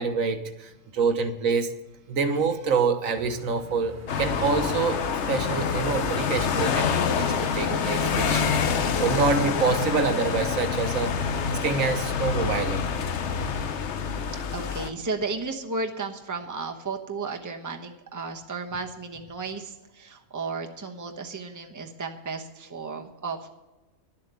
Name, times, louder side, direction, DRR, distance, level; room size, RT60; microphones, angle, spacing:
voice 1, 0.0-1.7 2.1-5.0 5.3-8.4 9.0-12.8, right 4 dB, 90° right, 8 dB, 1.5 m, -26 dB
sound 1, 3.1-9.1, right 1 dB, 40° right, 1.3 m, -46 dB
sound 2, 4.1-14.9, left 6 dB, 60° left, 1.1 m, -26 dB
voice 2, 14.5-23.5, right 4 dB, 15° right, 4 dB, 0.9 m, -34 dB
11.5 x 7.4 x 8.2 m, 1.1 s
omnidirectional pair, 1.4 m